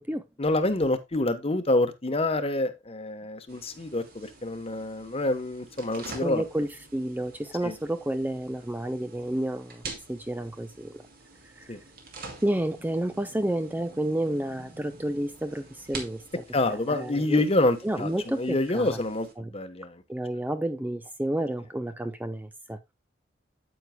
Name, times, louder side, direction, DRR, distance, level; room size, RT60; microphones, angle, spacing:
voice 1, 0.4-6.4 7.6-7.7 11.7-11.8 16.5-20.0, left 2 dB, 35° left, 1.0 m, -27 dB
sound 1, 3.5-19.3, right 3 dB, 55° right, 2.5 m, -47 dB
voice 2, 6.2-11.0 11.6-11.8 12.4-17.4 17.8-19.0 19.4-19.5 20.1-22.8, right 1 dB, 10° right, 0.5 m, -30 dB
9.3 x 8.3 x 2.2 m
head